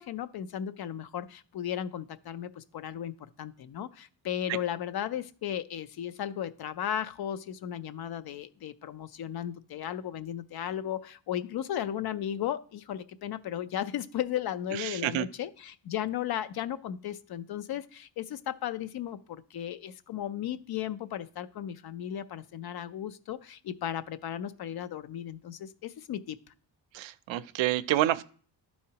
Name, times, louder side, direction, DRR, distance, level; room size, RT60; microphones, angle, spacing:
voice 1, 0.0-26.4, left 10 dB, 60° left, 14 dB, 0.5 m, -35 dB
voice 2, 14.7-15.3 26.9-28.2, right 14 dB, 90° right, 15 dB, 0.5 m, -28 dB
12.0 x 4.3 x 2.8 m, 0.43 s
wide cardioid pair, 150°, 44 cm